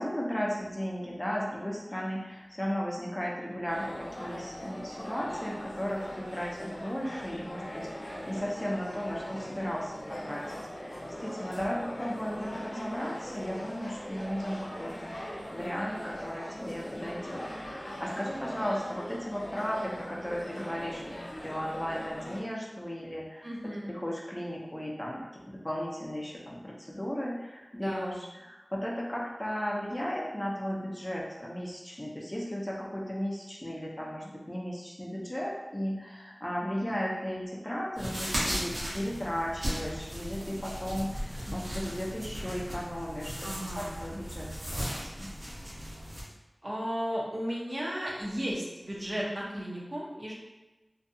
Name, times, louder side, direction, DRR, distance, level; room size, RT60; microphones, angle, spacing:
voice 1, 0.0-10.5 10.7-21.0 21.4-23.5 23.9-45.3, equal, 20° left, -4 dB, 0.5 m, -35 dB
sound 1, 3.7-22.4, equal, 75° left, 0.6 m, -41 dB
voice 2, 23.4-23.9 27.7-28.1 43.4-43.9 46.6-50.3, equal, 45° right, -5 dB, 0.7 m, -34 dB
sound 2, 37.9-46.2, equal, 70° right, 1.0 m, -36 dB
2.6 x 2.2 x 2.6 m, 1.1 s
wide cardioid pair, 60°, 0 cm